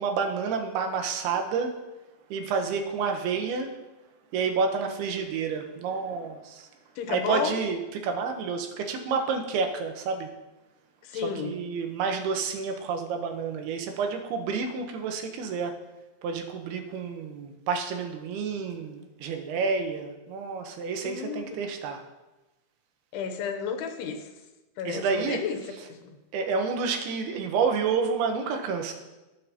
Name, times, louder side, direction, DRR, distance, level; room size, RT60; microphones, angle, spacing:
voice 1, 0.0-1.7 2.3-3.7 4.3-6.7 7.1-10.3 11.1-15.7 16.2-22.0 24.9-25.4 26.3-28.9, right 5 dB, 80° right, 4 dB, 2.9 m, -29 dB
voice 2, 7.0-7.6 11.0-11.6 21.0-21.6 23.1-24.2 24.8-25.6 25.9-26.2, left 6 dB, 90° left, 6 dB, 2.9 m, -32 dB
19.5 x 6.6 x 2.9 m, 1.1 s
omnidirectional pair, 4.6 m